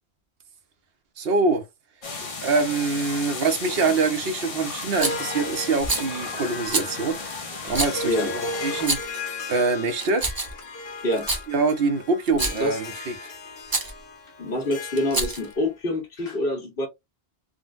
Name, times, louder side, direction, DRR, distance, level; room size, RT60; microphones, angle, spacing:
voice 1, 1.2-1.7 2.4-7.3 7.6-9.0 9.5-10.3 11.5-13.1, right 3 dB, 70° right, 0.9 m, -24 dB
sound 1, 2.0-8.9, left 3 dB, 40° left, 0.6 m, -35 dB
Harp, 4.7-15.7, left 3 dB, 75° left, 1.1 m, -36 dB
Rattle, 5.0-5.3 5.8-6.1 6.7-6.9 7.7-8.0 8.7-9.2 9.9-10.6 11.1-11.4 12.3-12.7 13.7-13.9 15.0-15.5, right 2 dB, 25° right, 0.5 m, -27 dB
voice 2, 14.4-16.9, left 1 dB, 60° left, 1.3 m, -26 dB
3.7 x 2.1 x 2.4 m
omnidirectional pair, 1.1 m